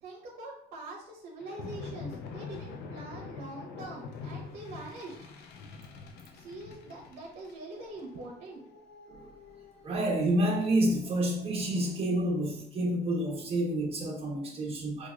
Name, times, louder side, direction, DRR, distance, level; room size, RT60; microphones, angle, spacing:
voice 1, 0.0-5.2 6.3-8.6, right 2 dB, 75° right, -2 dB, 0.8 m, -44 dB
sound 1, 1.4-12.0, left 4 dB, 70° left, 0.5 m, -46 dB
voice 2, 9.8-15.1, right 1 dB, 35° right, -2 dB, 1.0 m, -29 dB
4.6 x 2.4 x 2.4 m, 0.71 s
cardioid pair, 110°, 17 cm